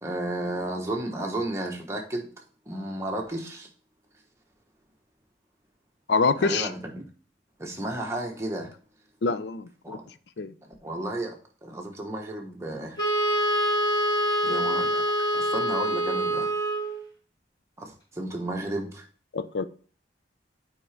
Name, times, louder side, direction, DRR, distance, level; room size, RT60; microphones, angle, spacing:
voice 1, 0.0-2.3 2.7-3.7 6.4-7.0 7.6-8.7 9.8-10.1 10.8-13.0 14.4-15.0 15.3-16.5 17.8-19.0, right 1 dB, 15° right, 1.1 m, -33 dB
voice 2, 6.1-6.7 9.2-10.0 10.4-10.5 19.3-19.7, left 4 dB, 65° left, 0.5 m, -25 dB
Wind instrument woodwind instrument, 13.0-17.0, equal, 20° left, 2.1 m, -25 dB
8.6 x 4.9 x 3.4 m
head